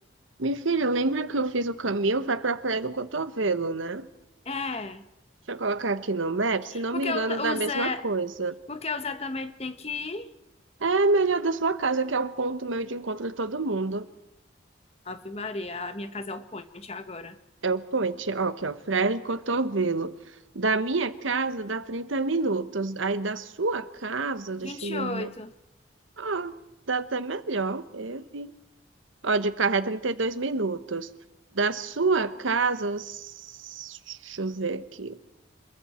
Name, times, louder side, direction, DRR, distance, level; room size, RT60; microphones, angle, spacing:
voice 1, 0.4-4.1 5.5-8.6 10.8-14.1 17.6-20.1 20.5-25.3 26.2-26.5 26.9-28.5 29.2-31.1 31.5-35.2, right 3 dB, 85° right, 12 dB, 1.1 m, -27 dB
voice 2, 4.4-5.0 6.7-8.1 8.7-10.3 15.0-17.3 24.6-25.5, left 3 dB, 30° left, 10 dB, 1.2 m, -33 dB
27.0 x 22.0 x 4.4 m, 0.89 s
head